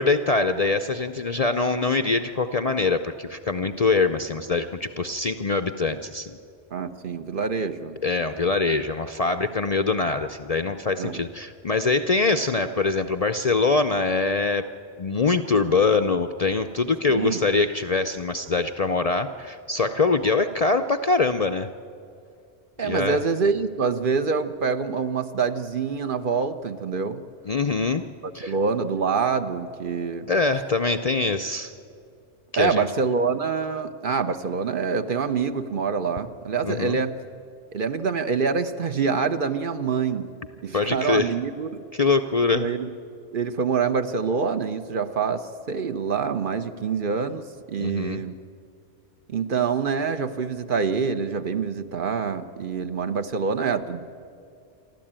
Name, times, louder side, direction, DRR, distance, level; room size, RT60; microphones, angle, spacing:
voice 1, 0.0-6.4 8.0-14.7 15.0-21.7 22.8-23.2 27.4-28.1 28.3-28.6 30.3-31.7 32.5-32.9 36.6-37.0 40.7-41.3 41.9-42.7 47.8-48.2, left 3 dB, 45° left, 8 dB, 0.5 m, -23 dB
voice 2, 6.7-8.0 11.0-11.2 17.1-17.4 22.8-27.2 28.2-30.3 32.6-37.1 37.7-40.3 40.6-41.8 42.5-42.9 43.3-48.4 49.3-54.1, right 5 dB, 50° right, 9 dB, 0.9 m, -26 dB
28.0 x 12.0 x 8.8 m, 2.4 s
omnidirectional pair, 1.2 m